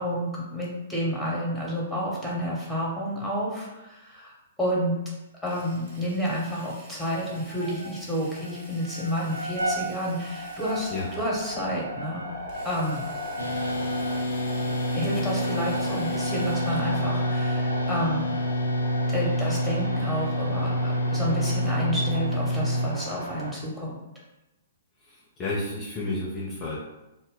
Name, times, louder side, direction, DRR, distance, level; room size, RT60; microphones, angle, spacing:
voice 1, 0.0-4.3 4.6-4.9 5.4-10.9 11.2-12.2 12.6-13.0 14.9-18.4 19.1-24.0, equal, ahead, -5 dB, 0.8 m, -30 dB
Drill, 5.5-11.5 12.5-17.2, right 2 dB, 40° right, 0.8 m, -49 dB
sound 1, 7.3-8.0 8.3-23.5, equal, 90° right, 0.7 m, -36 dB
sound 2, 13.4-22.9, equal, 80° left, 0.4 m, -27 dB
voice 2, 25.0-26.8, left 2 dB, 25° left, -5 dB, 0.5 m, -31 dB
2.1 x 2.0 x 3.6 m, 0.96 s
figure-of-eight pair, 115°, 0 cm